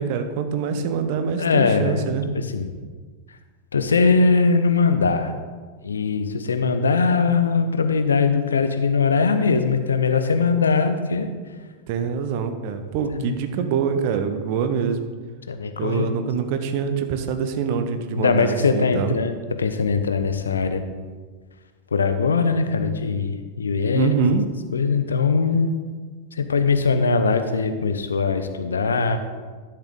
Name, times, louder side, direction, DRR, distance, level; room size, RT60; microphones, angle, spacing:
voice 1, 0.0-2.3 11.9-15.1 15.8-19.2 23.9-24.4, right 6 dB, 45° right, 8 dB, 0.8 m, -24 dB
voice 2, 1.4-2.0 2.3-2.7 3.7-5.3 5.8-11.3 13.1-13.4 15.5-16.1 18.1-20.8 21.9-24.1 24.7-25.7 26.3-29.2, left 4 dB, 70° left, 8 dB, 0.6 m, -21 dB
11.5 x 6.7 x 3.7 m, 1.5 s
figure-of-eight pair, 90°, 0 cm